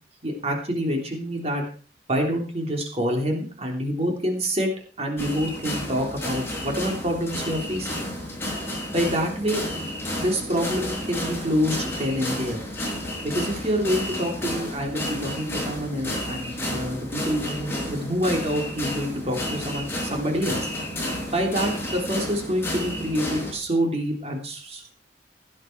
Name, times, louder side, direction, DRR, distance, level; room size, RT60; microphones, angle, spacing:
voice 1, 0.2-1.6 2.1-4.7 5.0-8.0 8.9-9.6 10.1-12.6 13.2-20.7 21.3-24.9, equal, 35° right, 1 dB, 3.4 m, -27 dB
sound 1, 5.2-23.5, left 1 dB, 15° left, 6.1 m, -31 dB
17.0 x 9.8 x 4.6 m, 0.38 s
head